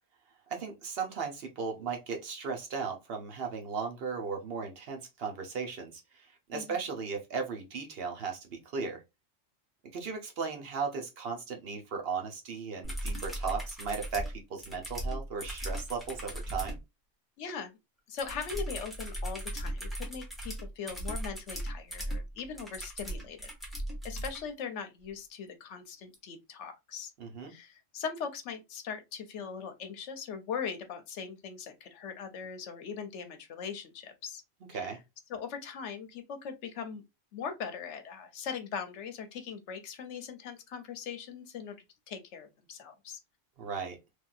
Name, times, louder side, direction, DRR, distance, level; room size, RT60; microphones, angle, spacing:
voice 1, 0.5-9.0 9.9-16.8 27.2-27.5 34.7-35.0 43.6-44.0, right 5 dB, 55° right, 1.0 m, -36 dB
sound 1, 12.8-16.8 18.2-24.4 26.1-26.2, right 1 dB, ahead, 0.7 m, -37 dB
voice 2, 17.4-17.7 18.1-23.5 24.0-27.1 27.5-34.4 34.7-34.9 35.3-37.0 37.3-41.8 42.1-43.2, left 6 dB, 70° left, 0.9 m, -40 dB
3.1 x 2.7 x 2.4 m
omnidirectional pair, 1.3 m